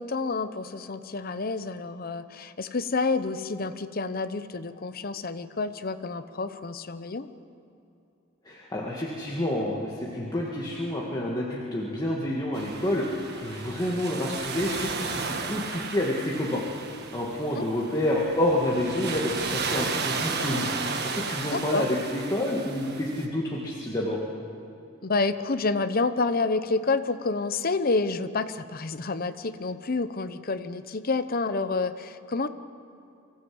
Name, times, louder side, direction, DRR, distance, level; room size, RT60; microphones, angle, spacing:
voice 1, 0.0-7.3 17.6-17.7 21.5-21.9 25.0-32.5, left 3 dB, 45° left, 11 dB, 0.8 m, -29 dB
voice 2, 8.4-13.1 13.4-16.6 17.1-20.7 21.0-24.2, left 1 dB, 20° left, -4 dB, 2.0 m, -28 dB
sound 1, 12.5-23.2, right 4 dB, 55° right, 1.5 m, -34 dB
24.5 x 15.5 x 7.8 m, 2.7 s
head